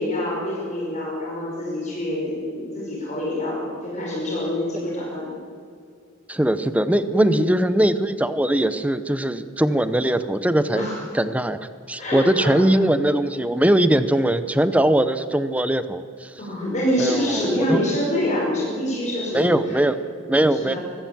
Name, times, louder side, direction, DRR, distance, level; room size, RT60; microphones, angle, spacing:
voice 1, 0.0-5.3 7.0-7.5 10.7-11.0 12.0-12.5 16.4-19.6 20.5-20.8, left 1 dB, 35° left, -5 dB, 5.4 m, -26 dB
voice 2, 6.3-10.9 11.1-11.6 11.9-16.3 17.0-17.9 19.3-20.7, right 1 dB, 5° right, 12 dB, 0.8 m, -21 dB
23.5 x 16.0 x 7.7 m, 2.2 s
head